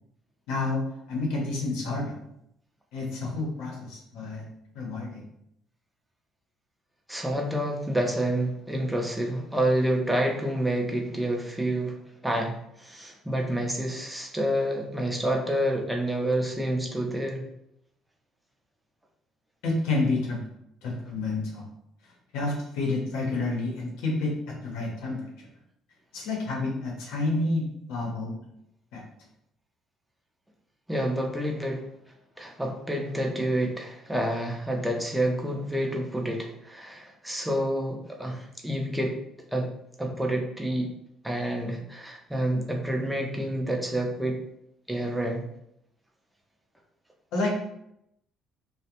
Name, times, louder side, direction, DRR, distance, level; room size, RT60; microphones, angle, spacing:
voice 1, 0.5-0.8 1.1-2.1 2.9-4.5 4.7-5.2 19.6-20.4 20.8-21.7 22.3-25.5 26.1-28.4 28.9-29.0 47.3-47.5, left 2 dB, 85° left, -1 dB, 0.7 m, -29 dB
voice 2, 7.1-12.0 12.2-17.4 30.9-31.9 32.4-39.2 39.5-39.7 40.0-40.9 41.2-44.4 44.9-45.4, right 1 dB, 5° right, 1 dB, 0.5 m, -28 dB
2.4 x 2.1 x 2.9 m, 0.77 s
supercardioid pair, 85°, 0 cm